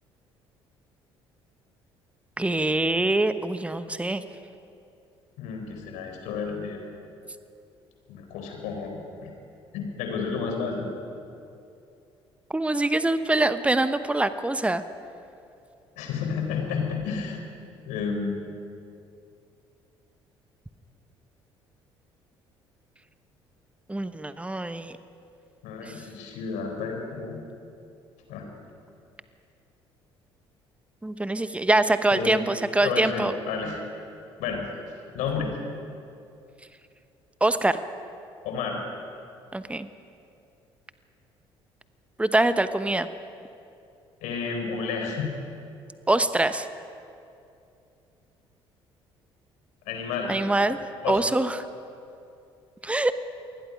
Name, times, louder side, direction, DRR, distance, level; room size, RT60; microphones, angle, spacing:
voice 1, 2.4-4.2 12.5-14.8 23.9-24.9 25.8-25.9 31.0-33.3 37.4-37.8 39.5-39.9 42.2-43.1 46.1-46.7 50.3-50.8 51.1-51.6 52.8-53.1, right 2 dB, 10° right, 11 dB, 1.1 m, -24 dB
voice 2, 5.4-6.8 8.1-9.3 9.7-10.9 16.0-17.4 17.9-18.5 25.6-27.4 28.3-28.5 32.1-32.4 32.8-33.8 34.4-34.6 35.1-35.5 38.4-38.8 44.2-45.3 49.9-50.3 51.0-51.2, left 5 dB, 65° left, 3 dB, 4.3 m, -31 dB
28.0 x 20.5 x 5.3 m, 2.6 s
figure-of-eight pair, 50°, 14 cm